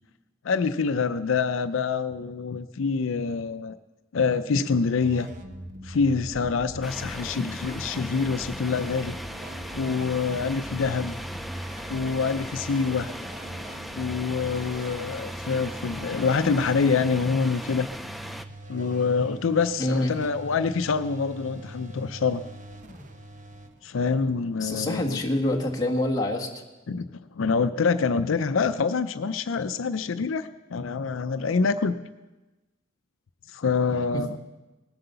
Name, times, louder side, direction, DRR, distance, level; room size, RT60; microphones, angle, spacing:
voice 1, 0.4-3.8 4.1-5.3 5.8-9.2 9.8-11.2 11.9-13.1 14.0-17.9 18.7-22.4 23.8-25.2 26.9-31.9 33.5-34.4, left 5 dB, 85° left, 12 dB, 0.5 m, -26 dB
sound 1, 5.0-24.5, right 2 dB, 40° right, 1.0 m, -42 dB
sound 2, 6.8-18.5, equal, ahead, 0.4 m, -38 dB
voice 2, 19.8-20.1 24.6-26.5, left 1 dB, 20° left, -1 dB, 1.7 m, -26 dB
19.0 x 7.8 x 6.8 m, 1.1 s
head